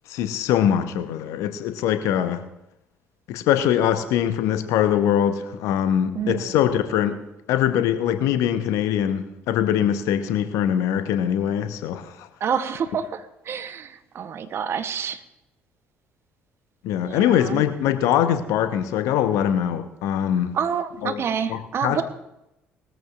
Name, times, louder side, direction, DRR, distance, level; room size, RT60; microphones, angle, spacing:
voice 1, 0.1-2.4 3.3-7.2 7.5-12.0 16.8-20.6 21.0-21.2 21.5-22.0, left 10 dB, 60° left, 9 dB, 1.0 m, -22 dB
voice 2, 6.1-6.6 12.4-15.2 17.0-17.6 20.5-22.0, right 7 dB, 45° right, 10 dB, 0.9 m, -28 dB
20.0 x 14.0 x 2.5 m, 0.88 s
figure-of-eight pair, 50°, 6 cm